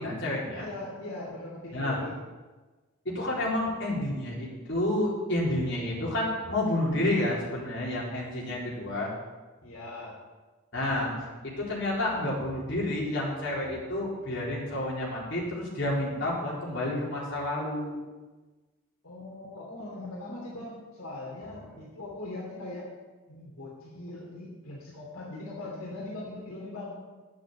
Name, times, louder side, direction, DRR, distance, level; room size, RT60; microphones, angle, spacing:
voice 1, 0.0-0.7 1.7-2.0 3.0-9.1 10.7-11.1 11.5-18.0 21.4-21.6, left 1 dB, 55° left, -5 dB, 4.1 m, -30 dB
voice 2, 0.6-2.2 9.6-10.2 19.0-22.9 23.3-27.0, left 2 dB, 75° left, -5 dB, 3.1 m, -40 dB
10.5 x 8.2 x 8.3 m, 1.3 s
head